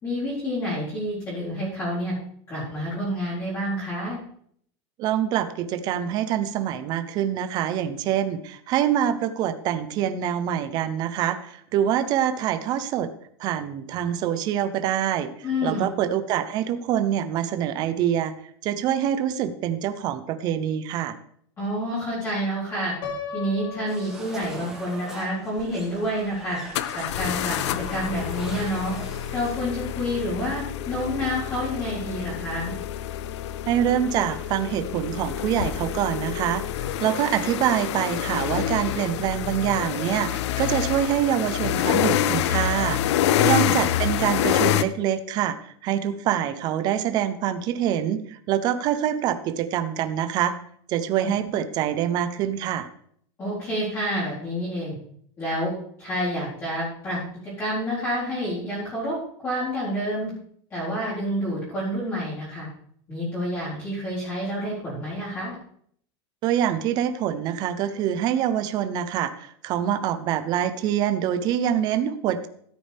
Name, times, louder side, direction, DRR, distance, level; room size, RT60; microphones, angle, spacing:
voice 1, 0.0-2.1 2.5-4.2 15.4-15.9 21.6-22.9 23.3-26.6 26.9-28.9 29.3-32.7 43.3-43.7 51.2-51.5 53.4-54.9 55.4-55.7 56.0-59.2 59.4-60.3 60.7-62.7 63.1-65.5, equal, 20° left, -10 dB, 4.2 m, -28 dB
voice 2, 5.0-13.1 13.4-15.3 15.6-18.3 18.6-21.2 33.7-43.0 43.4-45.6 45.8-50.5 50.9-52.9 66.4-72.5, right 10 dB, 30° right, 11 dB, 0.7 m, -25 dB
Piano, 23.0-25.0, left 5 dB, 35° left, 1.6 m, -36 dB
sound 1, 23.9-29.6, right 2 dB, 5° right, 1.9 m, -42 dB
sound 2, 25.6-25.7 26.7-44.8, left 11 dB, 75° left, 0.6 m, -27 dB
13.5 x 8.6 x 3.4 m, 0.65 s
supercardioid pair, 175°, 14 cm